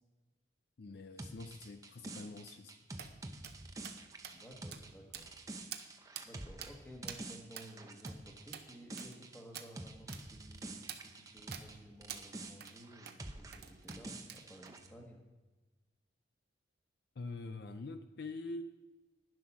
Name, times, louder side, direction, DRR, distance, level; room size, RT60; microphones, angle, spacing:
voice 1, 0.8-2.8 17.2-18.6, left 3 dB, 55° left, 9 dB, 0.4 m, -45 dB
sound 1, 1.2-11.8 12.0-14.9, right 2 dB, 15° right, 0.6 m, -48 dB
sound 2, 3.0-3.1 3.4-3.6 3.8-4.0 4.2-4.4 4.7-4.8 5.1-5.4 5.7-5.9 6.2-6.3 6.6-6.7 7.1-7.2 7.6-7.7 8.1-8.2 8.5-8.7 9.0-9.2 9.6-9.7 10.1-10.2 10.9-11.0 11.5-11.7 12.1-12.2 12.6-12.8 13.1-13.2 13.5-14.0 14.3-14.7, right 9 dB, 55° right, 0.7 m, -46 dB
voice 2, 4.3-5.3 6.2-15.2, right 1 dB, 10° left, 0 dB, 1.4 m, -55 dB
10.5 x 7.6 x 5.9 m, 1.2 s
head